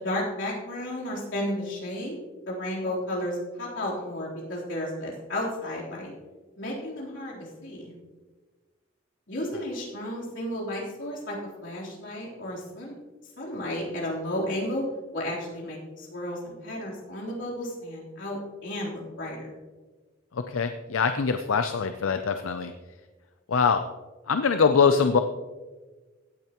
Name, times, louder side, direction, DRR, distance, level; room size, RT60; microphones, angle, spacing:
voice 1, 0.0-2.2 2.5-6.1 6.6-7.9 9.3-12.9 13.4-14.8 15.1-19.5, left 1 dB, 65° left, -5 dB, 3.7 m, -33 dB
voice 2, 20.3-22.7 23.5-23.8 24.3-25.2, left 5 dB, 85° left, 8 dB, 0.5 m, -23 dB
16.5 x 9.0 x 3.0 m, 1.3 s
head